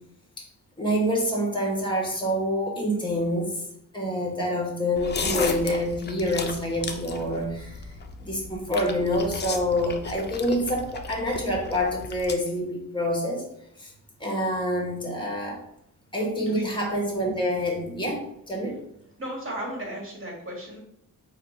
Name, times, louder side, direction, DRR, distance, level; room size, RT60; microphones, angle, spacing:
voice 1, 0.8-3.6 3.9-7.9 8.2-13.5 13.8-13.9 14.2-15.6 16.1-18.8, equal, 15° left, -1 dB, 1.2 m, -27 dB
sound 1, 5.0-12.3, left 4 dB, 30° left, 0.4 m, -35 dB
voice 2, 19.2-20.8, right 1 dB, 40° right, -2 dB, 1.5 m, -35 dB
4.6 x 2.4 x 4.7 m, 0.77 s
wide cardioid pair, 155°, 33 cm